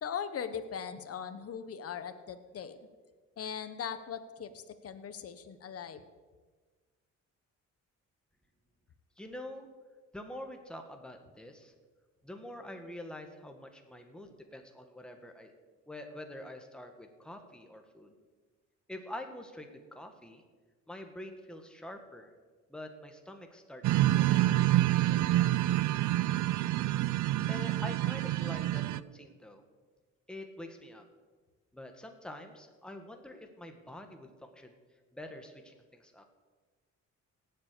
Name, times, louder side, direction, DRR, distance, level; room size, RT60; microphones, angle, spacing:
voice 1, 0.0-2.8 3.4-6.0, left 7 dB, 50° left, 10 dB, 1.2 m, -39 dB
voice 2, 9.2-9.7 10.1-11.7 12.2-15.5 15.9-18.1 18.9-20.4 20.9-22.3 22.7-25.8 27.5-29.6 30.3-31.0 31.7-34.7 35.1-36.2, left 1 dB, 5° left, 4 dB, 1.7 m, -46 dB
sound 1, 23.8-29.0, right 15 dB, 75° right, 0.5 m, -27 dB
17.5 x 7.8 x 6.9 m, 1.4 s
cardioid pair, 90°, 30 cm